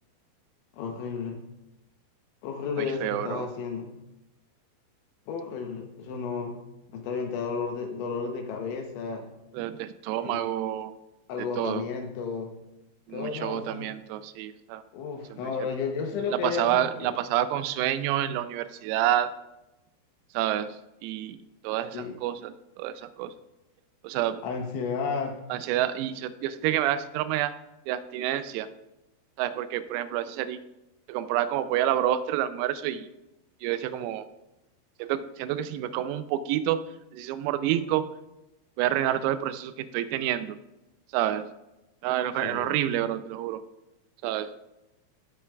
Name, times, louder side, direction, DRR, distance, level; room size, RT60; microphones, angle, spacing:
voice 1, 0.7-1.4 2.4-3.9 5.3-6.6 6.9-9.3 10.2-10.4 11.3-12.5 13.1-13.9 14.9-17.1 21.9-22.2 24.4-25.4 42.4-42.8, left 5 dB, 75° left, 3 dB, 3.0 m, -32 dB
voice 2, 2.8-3.5 9.5-10.9 11.6-11.9 13.1-14.8 15.3-15.4 16.3-19.3 20.3-21.4 21.6-23.3 24.0-24.4 25.5-27.6 27.9-28.7 29.4-30.6 31.1-33.1 33.6-34.3 35.0-38.1 38.8-40.6 41.1-41.5 42.0-43.6 44.2-44.5, right 12 dB, 90° right, 11 dB, 3.4 m, -28 dB
17.0 x 8.3 x 2.3 m, 0.95 s
omnidirectional pair, 6.0 m